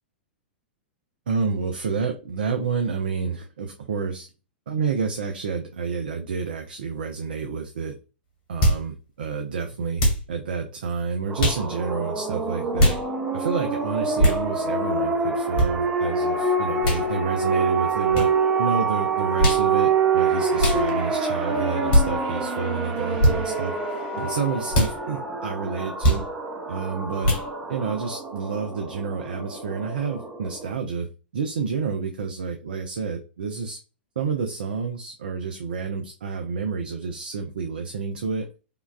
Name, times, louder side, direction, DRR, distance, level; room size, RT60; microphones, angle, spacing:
voice 1, 1.3-4.3 4.7-7.9 8.5-10.0 10.3-13.0 13.3-18.3 18.6-26.3 26.7-27.4 27.7-31.1 31.3-33.8 34.2-38.5, right 5 dB, 60° right, 5 dB, 0.5 m, -29 dB
sound 1, 8.6-8.8 10.0-10.3 11.4-11.6 12.8-13.0 14.2-14.4 15.6-15.7 16.8-17.0 18.1-18.3 19.4-19.7 20.6-20.8 21.9-22.1 23.2-23.4 24.7-24.9 26.0-26.2 27.2-27.5, equal, 45° left, 1.6 m, -19 dB
sound 2, 11.3-30.7, right 4 dB, 15° right, 0.6 m, -26 dB
sound 3, 20.1-25.0, right 4 dB, 40° right, 1.0 m, -42 dB
5.0 x 2.3 x 2.2 m, 0.33 s
figure-of-eight pair, 100°, 6 cm